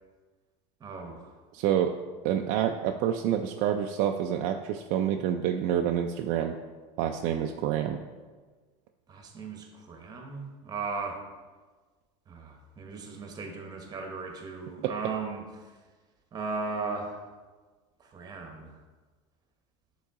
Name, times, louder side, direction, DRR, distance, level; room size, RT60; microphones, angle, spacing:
voice 1, 0.8-1.3 9.1-11.2 12.3-15.4 16.3-17.3 18.0-18.8, right 4 dB, 25° right, 3 dB, 1.0 m, -37 dB
voice 2, 1.5-1.9 2.2-6.5 7.0-8.0 14.8-14.9, right 10 dB, 55° right, 4 dB, 0.4 m, -27 dB
7.1 x 3.8 x 3.6 m, 1.4 s
supercardioid pair, 125°, 16 cm